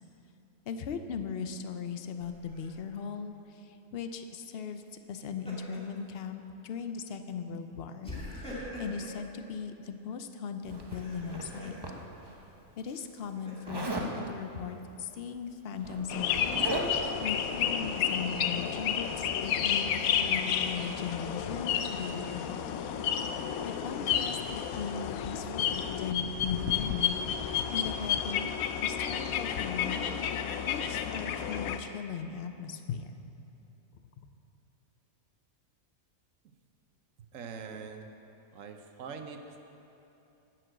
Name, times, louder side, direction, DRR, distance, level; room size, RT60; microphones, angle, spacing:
voice 1, 0.7-4.8 5.1-11.8 12.8-22.8 23.2-28.5 28.8-30.4 30.7-33.1 34.2-34.3, left 6 dB, 60° left, 8 dB, 0.6 m, -39 dB
Laughter, 2.2-2.8 5.0-6.0 6.4-6.6 8.0-9.2 10.7-11.8 12.8-14.1, left 1 dB, 5° left, 2.3 m, -44 dB
Zipper (clothing), 10.7-12.3 13.7-14.1 15.3-15.4 15.7-17.2, right 1 dB, 20° right, 0.8 m, -37 dB
sound 1, 16.1-31.8, left 8 dB, 80° left, 1.0 m, -31 dB
voice 2, 37.3-38.1 38.5-39.6, right 5 dB, 65° right, 6 dB, 1.1 m, -43 dB
11.0 x 6.1 x 7.9 m, 2.9 s
omnidirectional pair, 1.5 m